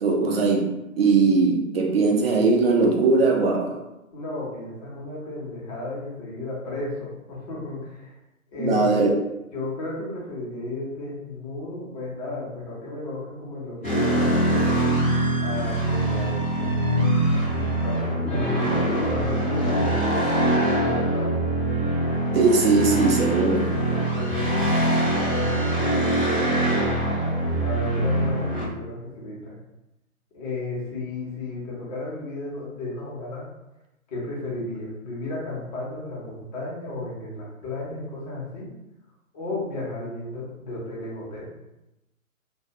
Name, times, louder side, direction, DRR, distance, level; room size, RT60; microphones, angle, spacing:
voice 1, 0.0-3.8 8.6-9.1 22.3-23.7, right 4 dB, 45° right, 0 dB, 0.6 m, -20 dB
voice 2, 4.1-8.2 8.5-9.1 9.5-14.8 15.4-21.3 23.9-26.1 27.6-29.5 30.3-33.5 34.1-38.7 39.3-41.5, left 2 dB, 30° left, -5 dB, 0.8 m, -34 dB
sound 1, 13.8-28.6, right 1 dB, 10° left, 0.4 m, -23 dB
2.3 x 2.2 x 2.8 m, 0.93 s
figure-of-eight pair, 130°, 42 cm